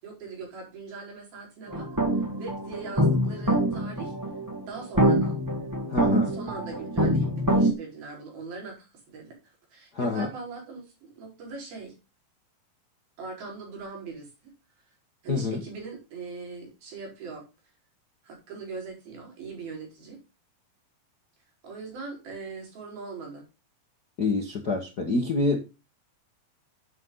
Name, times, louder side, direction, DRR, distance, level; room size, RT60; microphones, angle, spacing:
voice 1, 0.0-1.9 2.4-4.1 4.6-5.4 6.1-9.4 9.7-12.0 13.2-14.3 15.2-17.4 18.2-20.2 21.6-23.4, right 4 dB, 85° right, 0 dB, 6.5 m, -40 dB
sound 1, 1.7-7.7, equal, 30° right, 0.3 m, -25 dB
voice 2, 5.9-6.3 9.9-10.3 15.3-15.6 24.2-25.7, left 3 dB, 50° left, 3 dB, 1.2 m, -27 dB
10.5 x 8.3 x 3.9 m, 0.28 s
omnidirectional pair, 4.2 m